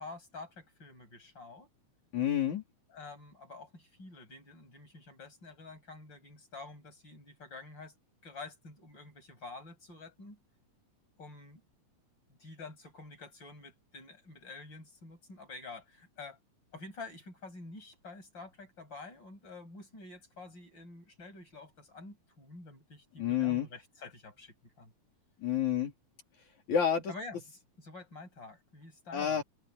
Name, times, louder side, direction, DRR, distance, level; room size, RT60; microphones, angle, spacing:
voice 1, 0.0-1.7 2.9-7.9 8.2-10.4 11.2-11.6 12.4-16.4 16.7-24.9 27.1-27.4 27.8-29.4, left 3 dB, 35° left, 8.6 m, -48 dB
voice 2, 2.1-2.6 23.2-23.7 25.4-25.9 26.7-27.1 29.1-29.4, left 9 dB, 70° left, 4.7 m, -29 dB
open air
omnidirectional pair, 3.5 m